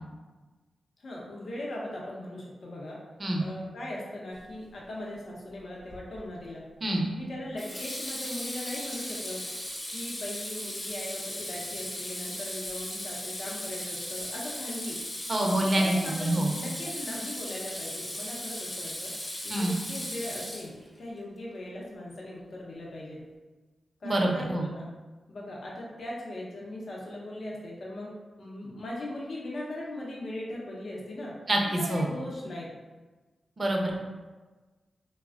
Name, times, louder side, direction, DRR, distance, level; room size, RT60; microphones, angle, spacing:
voice 1, 1.0-3.0 3.4-6.7 7.1-9.4 9.9-15.0 15.7-19.1 19.4-23.2 24.0-24.9 25.3-28.1 28.4-31.3 31.9-32.7, left 1 dB, 70° left, -4 dB, 0.6 m, -39 dB
Water tap faucet / Sink (filling or washing), 5.9-6.3 7.6-21.0, left 1 dB, 35° left, 0.8 m, -37 dB
voice 2, 15.3-16.5 19.5-19.7 24.0-24.7 31.5-32.1 33.6-33.9, right 1 dB, 45° right, 0 dB, 0.5 m, -26 dB
3.2 x 2.0 x 2.4 m, 1.3 s
cardioid pair, 55°, 0 cm